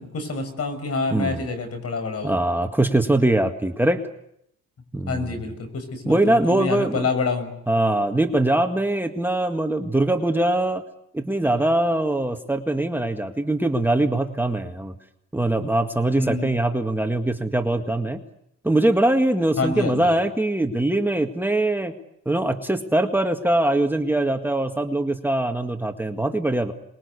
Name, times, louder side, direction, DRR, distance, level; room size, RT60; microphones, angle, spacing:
voice 1, 0.0-2.3 5.1-7.5 16.2-16.6 19.6-20.1, left 3 dB, 55° left, 9 dB, 6.4 m, -27 dB
voice 2, 1.1-1.4 2.2-4.0 4.9-5.4 6.1-7.1 7.7-10.8 11.1-14.9 15.3-18.2 18.6-21.9 22.3-26.7, right 1 dB, 5° right, 5 dB, 1.8 m, -22 dB
28.0 x 21.5 x 8.3 m, 0.76 s
cardioid pair, 90°, 30 cm